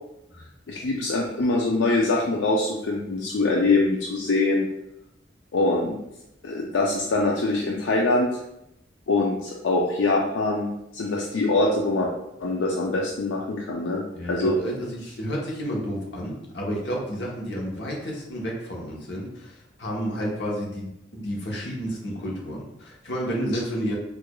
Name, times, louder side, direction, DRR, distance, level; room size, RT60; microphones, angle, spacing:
voice 1, 0.7-4.7 5.5-6.0 6.4-8.3 9.1-12.1 12.4-14.0 14.3-14.6, left 2 dB, 90° left, -2 dB, 0.4 m, -23 dB
voice 2, 14.1-24.0, equal, 65° left, -2 dB, 0.9 m, -31 dB
4.6 x 2.4 x 2.3 m, 0.83 s
head